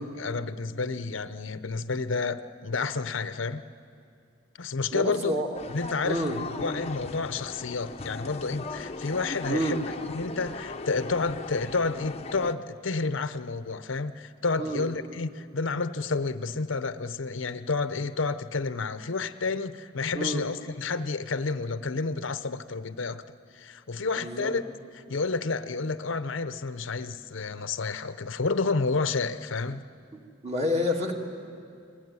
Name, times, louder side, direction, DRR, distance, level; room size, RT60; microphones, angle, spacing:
voice 1, 0.2-3.6 4.6-5.3 5.7-23.2 23.5-24.6 24.9-29.8, left 4 dB, 65° left, 12 dB, 0.8 m, -30 dB
voice 2, 4.9-5.5 6.0-6.4 9.5-9.8 14.6-14.9 20.1-20.4 24.2-24.5 30.4-31.1, equal, 30° right, 1 dB, 2.6 m, -28 dB
sound 1, 5.5-12.5, left 3 dB, 30° left, 0.8 m, -38 dB
29.5 x 21.0 x 9.6 m, 2.4 s
head